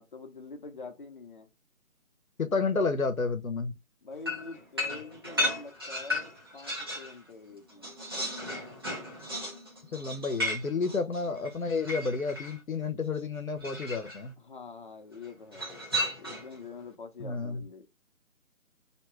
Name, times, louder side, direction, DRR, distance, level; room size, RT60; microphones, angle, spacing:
voice 1, 0.0-1.5 4.0-7.9 14.4-15.9 16.2-17.9, left 4 dB, 35° left, 0.9 m, -45 dB
voice 2, 2.4-3.7 9.9-14.3 17.2-17.6, left 4 dB, 80° left, 0.9 m, -30 dB
sound 1, 4.3-7.1 7.5-12.6 13.6-14.2 15.5-16.6, left 1 dB, 20° right, 0.7 m, -34 dB
3.1 x 2.9 x 4.6 m
figure-of-eight pair, 150°, 41 cm